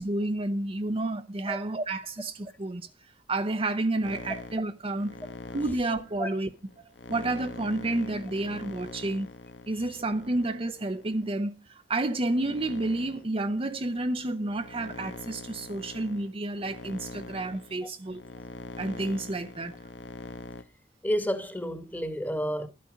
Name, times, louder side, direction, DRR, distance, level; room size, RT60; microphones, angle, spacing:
voice 1, 0.0-2.9 3.3-5.2 5.5-6.5 6.8-9.3 9.7-18.2 18.8-19.7, right 2 dB, 30° right, 0.7 m, -30 dB
sound 1, 4.0-11.4 12.0-20.6, left 2 dB, 85° left, 1.2 m, -44 dB
voice 2, 21.0-22.7, equal, 10° left, 1.4 m, -30 dB
12.5 x 8.6 x 5.0 m
head